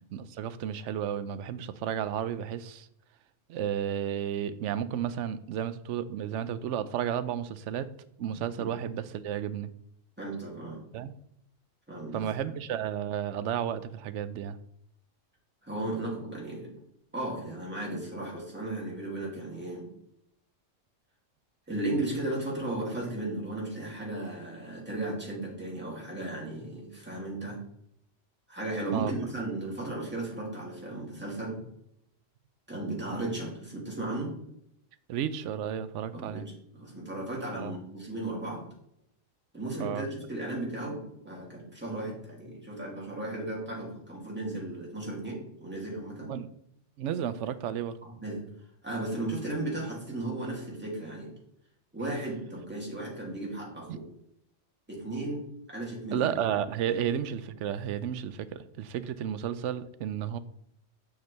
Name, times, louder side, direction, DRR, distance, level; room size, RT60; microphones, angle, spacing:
voice 1, 0.1-2.9 3.5-7.9 8.2-9.7 10.9-11.1 12.1-14.6 28.9-29.1 35.1-36.5 37.5-37.8 39.8-40.1 46.3-46.5 47.0-48.0 53.9-54.0 56.1-60.4, right 9 dB, 75° right, 14 dB, 0.9 m, -32 dB
voice 2, 10.2-10.8 11.9-12.3 15.6-16.7 17.1-19.9 21.7-27.6 28.5-31.6 32.7-34.3 36.1-38.6 39.5-46.3 48.0-48.5 48.8-51.3 51.9-54.1 54.9-56.3 56.9-57.0, right 2 dB, 10° right, -4 dB, 2.6 m, -35 dB
7.0 x 6.6 x 3.3 m, 0.75 s
omnidirectional pair, 1.3 m